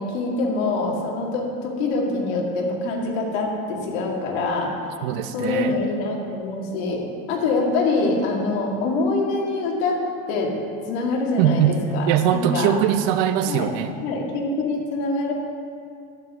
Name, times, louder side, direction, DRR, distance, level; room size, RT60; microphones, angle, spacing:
voice 1, 0.0-4.7 5.3-7.0 7.3-10.0 10.3-10.5 10.9-12.7 13.5-13.7 14.0-15.3, left 3 dB, 75° left, -1 dB, 2.1 m, -24 dB
voice 2, 5.0-5.8 11.4-11.7 12.1-13.9, right 10 dB, 60° right, 10 dB, 0.7 m, -21 dB
12.0 x 7.9 x 3.6 m, 2.3 s
supercardioid pair, 150°, 33 cm